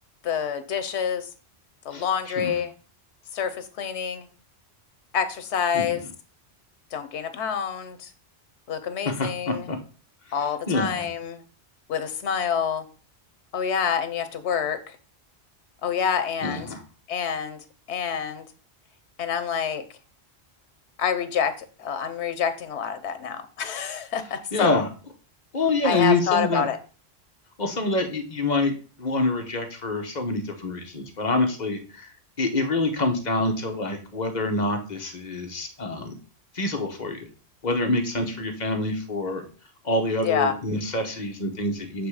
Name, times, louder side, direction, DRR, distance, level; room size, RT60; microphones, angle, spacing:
voice 1, 0.2-1.3 1.8-2.7 3.3-4.3 5.1-6.0 6.9-8.1 8.7-9.7 10.3-11.4 11.9-12.9 13.5-15.0 15.8-16.7 17.1-17.6 17.9-18.5 19.2-19.8 21.0-24.8 25.8-26.8 40.2-40.5, left 7 dB, 85° left, 11 dB, 1.0 m, -27 dB
voice 2, 1.9-2.5 5.7-6.0 9.0-9.8 10.7-11.1 16.4-16.8 24.5-24.9 25.5-26.7 27.6-28.7 29.0-32.1 32.4-36.1 36.5-37.3 37.6-39.4 39.8-42.1, left 2 dB, 45° left, 4 dB, 1.1 m, -26 dB
7.9 x 3.3 x 4.8 m, 0.38 s
omnidirectional pair, 1.1 m